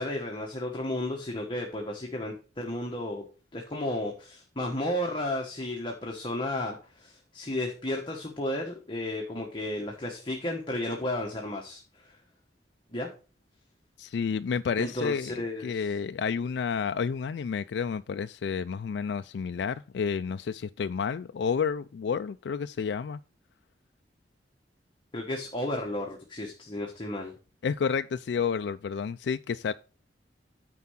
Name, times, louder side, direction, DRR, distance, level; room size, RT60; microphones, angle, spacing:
voice 1, 0.0-3.3 3.5-12.2 12.9-13.1 14.8-15.9 25.1-27.3, left 1 dB, 25° left, 1.3 m, -33 dB
voice 2, 14.0-15.3 15.6-23.2 27.6-29.7, left 6 dB, 70° left, 0.3 m, -30 dB
9.6 x 4.7 x 5.6 m
head